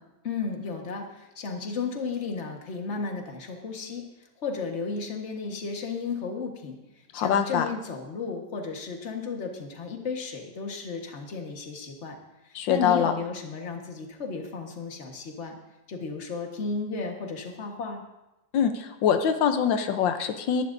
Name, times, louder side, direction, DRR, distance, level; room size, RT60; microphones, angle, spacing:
voice 1, 0.2-4.0 4.4-6.8 7.1-12.2 12.4-15.6 15.9-18.0, left 4 dB, 40° left, 2 dB, 1.6 m, -34 dB
voice 2, 7.1-7.7 12.5-13.1 18.5-20.6, left 8 dB, 90° left, 7 dB, 1.5 m, -24 dB
21.5 x 11.0 x 2.6 m, 0.98 s
omnidirectional pair, 2.0 m